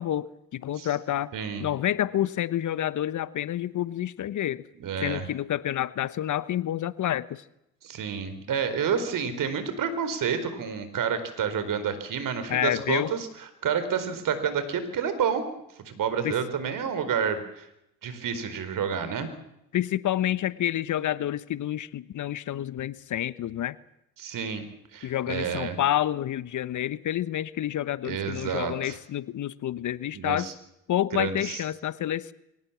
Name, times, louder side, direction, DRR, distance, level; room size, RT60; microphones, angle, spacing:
voice 1, 0.0-1.3 1.6-4.6 5.0-7.4 12.5-13.1 16.2-16.4 19.7-23.8 25.0-30.5 30.9-32.3, left 12 dB, 50° left, 17 dB, 1.1 m, -28 dB
voice 2, 1.3-1.7 4.8-5.2 7.8-13.3 13.6-15.4 15.8-17.7 18.0-19.3 24.2-24.7 24.9-25.8 28.0-29.0 30.1-30.5 31.1-31.6, right 7 dB, 55° right, 11 dB, 4.5 m, -29 dB
23.5 x 19.0 x 7.4 m, 0.83 s
hypercardioid pair, 65°, 38 cm